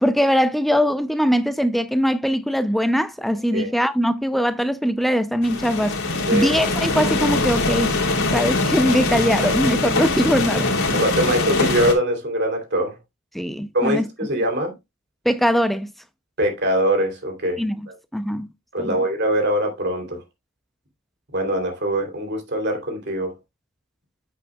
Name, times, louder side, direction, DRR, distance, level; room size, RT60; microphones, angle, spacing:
voice 1, 0.0-6.0 6.3-8.0 8.3-10.7 13.3-14.1 15.3-15.9 17.6-17.9 18.1-18.5 18.8-19.1, equal, ahead, 0.4 m, -21 dB
sound 1, 5.4-11.9, left 2 dB, 70° left, 2.9 m, -22 dB
voice 2, 11.0-12.9 13.7-14.7 16.4-17.6 18.7-20.2 21.3-23.3, right 1 dB, 50° right, 2.9 m, -22 dB
9.3 x 7.8 x 2.2 m
head